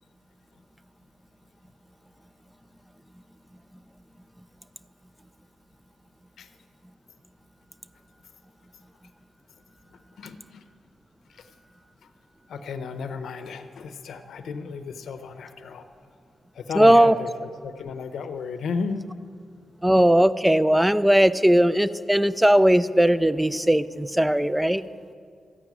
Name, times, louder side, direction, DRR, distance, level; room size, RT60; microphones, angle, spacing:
voice 1, 9.9-10.6 11.3-11.5 12.0-12.1 12.5-15.9 16.5-19.1, left 5 dB, 75° left, 9 dB, 0.7 m, -34 dB
voice 2, 16.8-17.1 19.8-24.8, right 1 dB, 5° right, 16 dB, 0.4 m, -18 dB
13.5 x 9.3 x 6.0 m, 2.3 s
cardioid pair, 100°, 0 cm